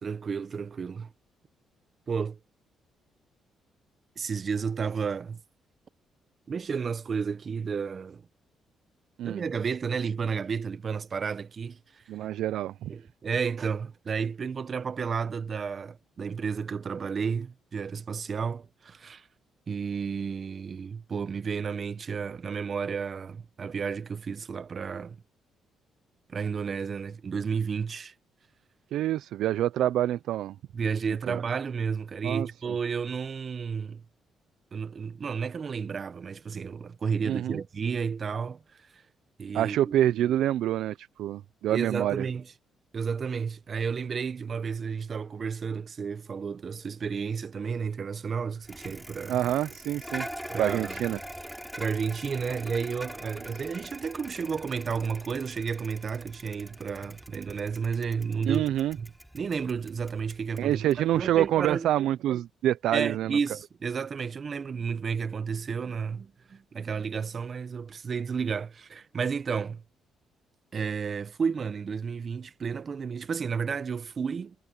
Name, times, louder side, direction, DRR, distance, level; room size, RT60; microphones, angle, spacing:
voice 1, 0.0-1.1 2.1-2.4 4.2-5.4 6.5-8.2 9.2-11.8 12.9-19.3 19.7-25.2 26.3-28.1 30.7-34.0 34.7-38.6 38.9-39.0 39.4-39.8 41.7-42.4 42.9-49.4 50.5-50.9 51.8-58.7 59.0-59.1 59.3-60.8 61.1-61.9 62.9-69.8 70.7-74.5, right 6 dB, 45° right, 1.1 m, -32 dB
voice 2, 12.1-12.9 28.9-30.6 31.3-31.4 32.2-32.8 37.2-37.6 39.5-42.3 49.3-50.3 50.6-51.2 58.5-59.0 60.6-63.4, right 12 dB, 80° right, 0.6 m, -27 dB
Bicycle, 48.6-61.8, equal, 5° right, 4.3 m, -43 dB
cardioid pair, 90°, 0 cm